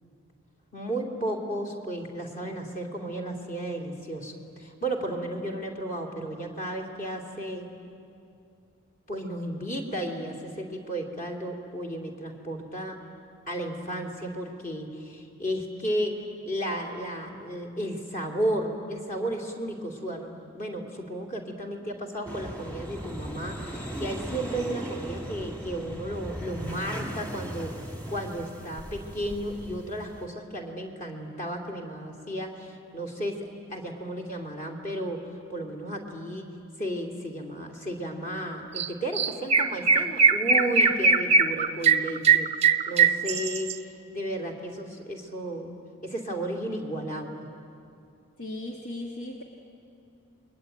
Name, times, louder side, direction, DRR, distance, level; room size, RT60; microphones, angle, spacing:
voice 1, 0.7-7.7 9.1-13.0 13.5-16.1 16.4-27.7 28.1-35.2 35.5-36.5 36.8-45.7 46.0-47.5, right 1 dB, 35° left, 2 dB, 2.9 m, -33 dB
sound 1, 22.3-30.3, right 1 dB, 5° left, 2.1 m, -38 dB
Chirp tweet, 38.8-38.9 39.2-43.7, right 5 dB, 30° right, 0.7 m, -20 dB
voice 2, 48.4-49.4, left 1 dB, 65° left, 1 dB, 1.9 m, -36 dB
29.5 x 22.0 x 9.2 m, 2.5 s
head